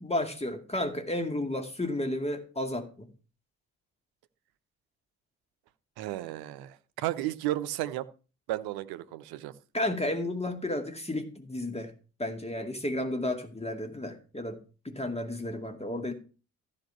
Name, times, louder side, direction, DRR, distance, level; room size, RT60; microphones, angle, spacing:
voice 1, 0.0-3.1 9.7-11.9 12.2-14.6 14.8-16.1, left 1 dB, 15° left, 6 dB, 2.3 m, -32 dB
voice 2, 6.0-8.1 8.5-9.5, right 14 dB, 60° right, 13 dB, 0.9 m, -33 dB
14.0 x 5.3 x 6.8 m, 0.35 s
figure-of-eight pair, 40°, 42 cm